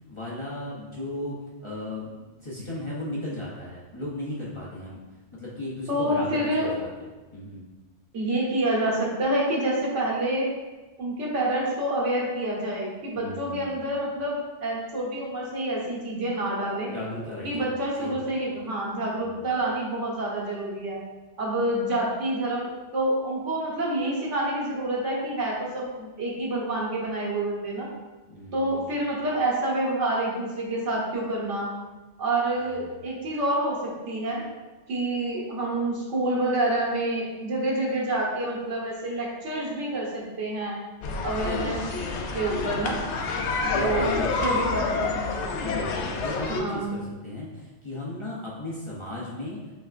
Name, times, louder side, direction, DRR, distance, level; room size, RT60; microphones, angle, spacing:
voice 1, 0.1-5.0 5.3-6.9 7.3-7.6 13.1-14.0 16.9-17.7 18.0-18.3 19.2-19.5 28.3-29.1 32.7-33.0 43.0-44.9 45.6-49.6, left 1 dB, 30° left, -7 dB, 0.7 m, -36 dB
voice 2, 5.9-6.7 8.1-10.5 11.0-16.9 17.4-21.0 21.4-27.9 28.5-31.7 32.2-34.4 34.9-40.8 41.2-41.9 42.3-43.0 43.8-45.3 46.5-47.0, right 1 dB, 80° right, -4 dB, 1.5 m, -27 dB
sound 1, 41.0-46.6, left 3 dB, 75° left, 0.8 m, -28 dB
5.5 x 3.5 x 2.5 m, 1.2 s
omnidirectional pair, 1.2 m